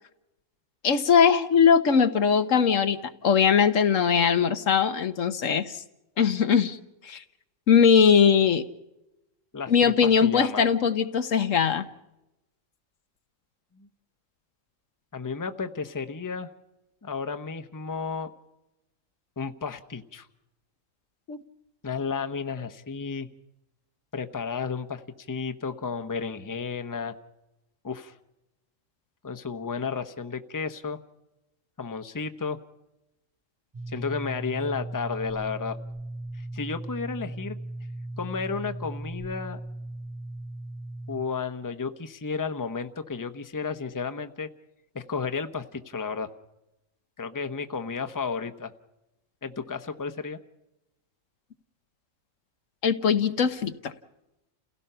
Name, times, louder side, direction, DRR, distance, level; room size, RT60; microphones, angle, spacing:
voice 1, 0.8-5.8 6.2-6.8 7.0-7.2 7.7-8.6 9.7-11.8 21.3-21.4 52.8-53.9, left 7 dB, 80° left, 9 dB, 1.5 m, -21 dB
voice 2, 10.0-10.7 13.8-13.9 15.1-16.5 17.0-18.3 19.4-20.3 21.8-23.3 24.1-25.0 25.3-27.1 27.8-28.1 29.2-31.0 31.8-32.6 33.9-35.8 36.3-37.6 38.2-39.6 41.1-44.5 44.9-46.3 47.2-48.7 49.4-50.4, left 5 dB, 15° left, 8 dB, 0.9 m, -32 dB
sound 1, 33.7-41.3, right 1 dB, 25° right, 0.5 m, -37 dB
29.5 x 17.0 x 5.6 m, 0.93 s
omnidirectional pair, 1.3 m